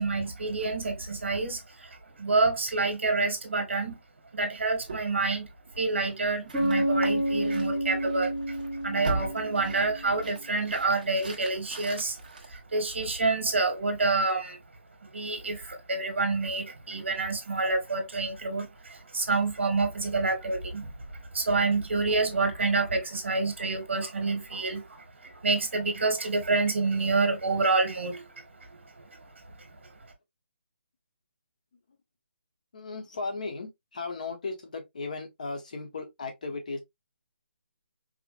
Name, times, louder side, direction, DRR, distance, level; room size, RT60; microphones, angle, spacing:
voice 1, 0.0-1.9 2.2-4.0 4.3-5.5 5.8-8.5 8.8-12.2 12.5-14.6 15.1-20.9 21.3-28.3, right 3 dB, 75° right, 1.7 m, -28 dB
sound 1, 4.9-13.3, right 2 dB, 40° right, 1.3 m, -41 dB
Bass guitar, 6.5-10.4, right 1 dB, ahead, 0.9 m, -29 dB
voice 2, 32.7-36.8, left 3 dB, 40° left, 1.2 m, -36 dB
5.1 x 2.5 x 2.5 m
hypercardioid pair, 180°, 6 cm